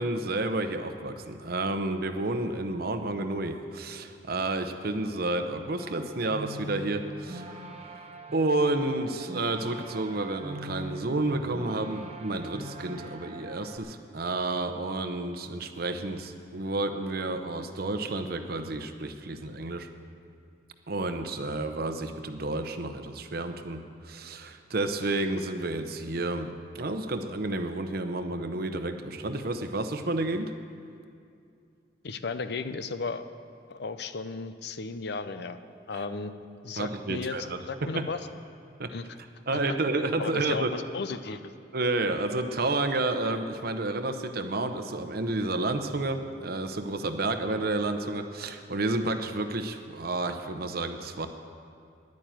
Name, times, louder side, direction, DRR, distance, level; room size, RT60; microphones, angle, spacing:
voice 1, 0.0-7.6 8.3-19.9 20.9-30.5 36.8-38.1 38.8-38.9 39.5-40.7 41.7-51.3, right 2 dB, 60° right, 7 dB, 0.8 m, -30 dB
sound 1, 5.8-13.8, right 1 dB, 35° right, 1.2 m, -42 dB
voice 2, 32.0-33.2 33.7-35.6 35.9-36.3 36.6-38.2 38.9-39.0 40.2-41.4, left 4 dB, 65° left, 11 dB, 0.6 m, -35 dB
11.0 x 9.2 x 8.9 m, 2.4 s
head